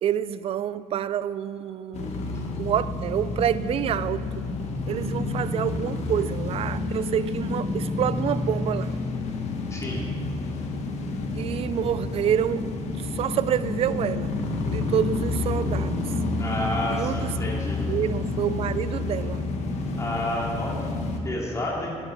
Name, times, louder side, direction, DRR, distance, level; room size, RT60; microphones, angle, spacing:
voice 1, 0.0-2.1 2.6-4.2 4.9-8.9 11.3-12.7 13.0-14.3 14.7-16.1 16.9-17.5 17.9-19.4, right 10 dB, 55° right, 0.4 m, -27 dB
sound 1, 1.9-21.2, left 3 dB, 65° left, 1.4 m, -29 dB
voice 2, 9.7-10.0 16.4-17.9 19.9-21.9, left 1 dB, 25° left, 2.7 m, -30 dB
10.5 x 9.5 x 4.6 m
cardioid pair, 100°, 12 cm